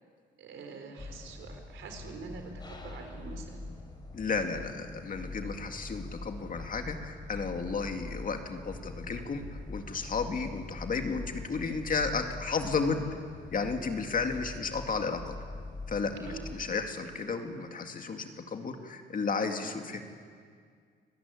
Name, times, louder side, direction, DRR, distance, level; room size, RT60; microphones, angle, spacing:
voice 1, 0.4-3.7 16.2-16.6, right 4 dB, 75° right, 4 dB, 4.1 m, -45 dB
sound 1, 1.0-16.6, left 2 dB, 20° left, 3.4 m, -43 dB
voice 2, 4.1-9.4 9.7-13.1 13.5-15.4 15.9-20.0, left 4 dB, 45° left, 5 dB, 2.3 m, -33 dB
25.0 x 14.5 x 9.9 m, 2.1 s
cardioid pair, 90°, 20 cm